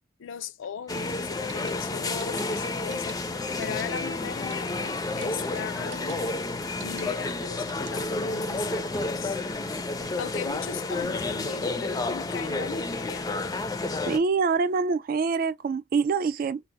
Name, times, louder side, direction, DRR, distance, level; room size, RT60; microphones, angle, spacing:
voice 1, 0.2-3.3 3.6-6.2 6.8-9.4 9.8-13.5, left 7 dB, 85° left, 0.4 m, -38 dB
sound 1, 0.9-14.2, left 2 dB, 20° left, 0.4 m, -30 dB
sound 2, 1.3-8.2, right 6 dB, 65° right, 0.8 m, -46 dB
sound 3, 5.5-11.4, right 2 dB, 30° right, 0.9 m, -52 dB
voice 2, 14.1-16.6, right 5 dB, 50° right, 0.3 m, -25 dB
2.7 x 2.0 x 3.5 m
head